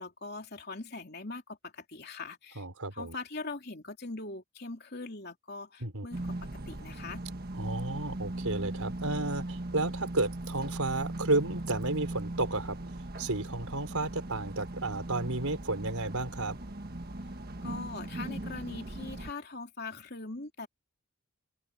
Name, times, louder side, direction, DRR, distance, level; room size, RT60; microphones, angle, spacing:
voice 1, 0.0-2.7 2.9-7.2 17.6-20.7, left 3 dB, 45° left, 3.5 m, -41 dB
voice 2, 2.6-3.1 5.8-6.1 7.6-12.8 13.2-16.6, right 2 dB, 80° right, 4.5 m, -32 dB
sound 1, 6.1-19.3, right 1 dB, 45° right, 1.6 m, -39 dB
open air
head